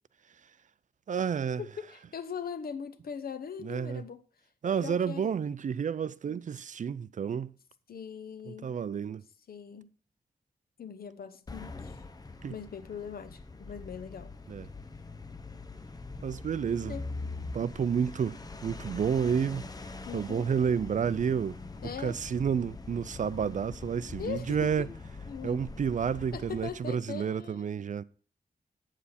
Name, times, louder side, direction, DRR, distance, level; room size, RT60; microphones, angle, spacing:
voice 1, 1.1-1.6 3.6-4.0 4.6-7.5 8.5-9.2 12.4-12.5 14.5-14.7 16.2-17.0 17.5-19.7 20.1-21.6 22.0-24.9 25.4-28.0, right 7 dB, 55° right, 0.4 m, -30 dB
voice 2, 1.6-4.2 4.8-5.3 6.3-6.4 7.9-8.7 9.5-9.9 10.8-12.0 12.5-14.3 16.8-17.1 20.1-20.5 21.8-22.2 24.2-24.9 25.3-25.6 26.3-27.7, left 7 dB, 85° left, 0.8 m, -40 dB
sound 1, 11.5-27.0, left 3 dB, 25° left, 0.7 m, -43 dB
8.2 x 7.5 x 4.2 m
wide cardioid pair, 120°, 15 cm